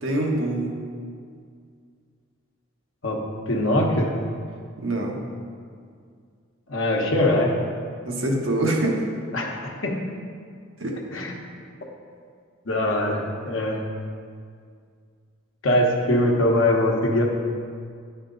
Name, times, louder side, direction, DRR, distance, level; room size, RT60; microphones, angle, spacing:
voice 1, 0.0-0.8 4.8-5.2 8.0-9.0 10.8-11.2, right 1 dB, 65° right, -1 dB, 1.1 m, -25 dB
voice 2, 3.5-4.1 6.7-7.5 9.3-10.0 11.1-11.3 12.7-13.8 15.6-17.2, left 1 dB, 70° left, 0 dB, 1.0 m, -22 dB
10.0 x 4.3 x 3.9 m, 2.1 s
head